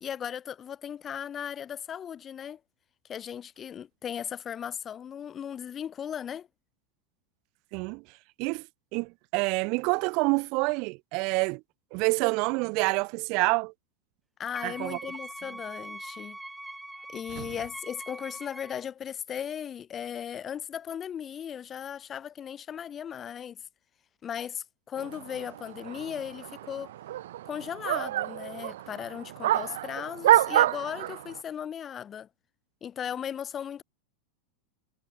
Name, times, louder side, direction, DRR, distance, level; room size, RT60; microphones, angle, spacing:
voice 1, 0.0-2.6 3.1-6.5 14.4-16.4 17.1-23.6 24.2-26.9 27.5-32.3 32.8-33.8, left 8 dB, 25° left, 0.8 m, -37 dB
voice 2, 7.7-8.0 8.4-8.7 8.9-11.6 11.9-13.7 14.6-15.0 17.3-17.5, right 30 dB, 50° right, 1.2 m, -27 dB
Wind instrument woodwind instrument, 14.5-18.8, right 1 dB, 5° right, 2.1 m, -43 dB
sound 1, 25.0-31.4, right 14 dB, 80° right, 0.4 m, -28 dB
supercardioid pair, 150°, 0 cm